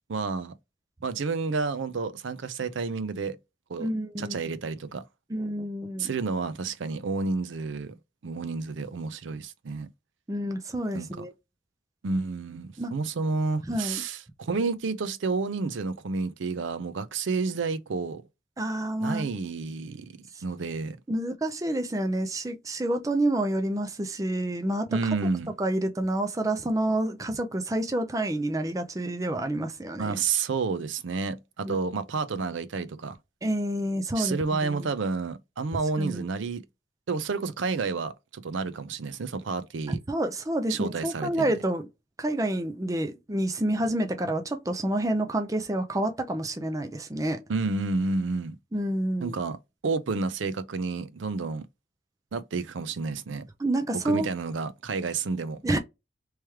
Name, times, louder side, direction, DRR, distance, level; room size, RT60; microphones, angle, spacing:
voice 1, 0.1-0.5 1.0-3.4 3.7-3.9 4.2-5.0 6.0-7.9 8.2-9.9 10.9-11.1 12.0-18.2 19.0-20.1 20.4-21.0 24.9-25.5 30.0-33.2 34.2-36.6 37.1-40.0 40.7-41.5 47.5-48.6 49.2-49.6 49.8-51.7 52.3-53.4 54.0-55.6, right 4 dB, 75° right, 0.5 m, -30 dB
voice 2, 3.8-4.4 5.3-6.1 10.3-11.3 12.8-12.9 13.7-14.0 18.6-19.3 20.3-20.4 21.1-24.9 25.6-30.2 31.7-31.8 33.4-34.9 36.0-36.3 40.1-41.9 42.2-47.4 48.7-49.4 53.6-54.3 55.6-55.8, right 1 dB, 15° right, 0.4 m, -28 dB
3.2 x 3.1 x 3.4 m
head